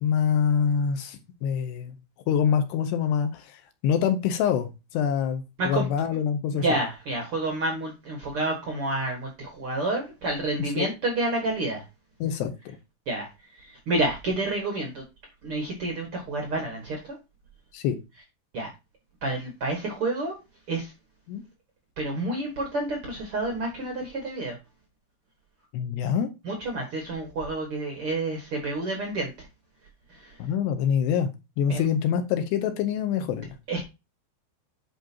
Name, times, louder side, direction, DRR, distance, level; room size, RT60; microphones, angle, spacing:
voice 1, 0.0-2.0 2.3-6.6 10.8-10.9 12.2-12.5 17.7-18.0 21.3-21.4 25.7-26.3 30.4-31.3 31.6-33.5, left 8 dB, 75° left, 8 dB, 2.7 m, -25 dB
voice 2, 6.5-11.8 13.1-13.3 13.6-15.0 15.4-17.2 18.5-18.7 19.2-20.4 20.7-20.9 22.0-24.6 26.4-29.5 30.1-30.4 31.7-31.8 33.7-33.8, right 2 dB, 80° right, 1 dB, 1.2 m, -29 dB
10.5 x 5.0 x 2.8 m, 0.25 s
omnidirectional pair, 5.3 m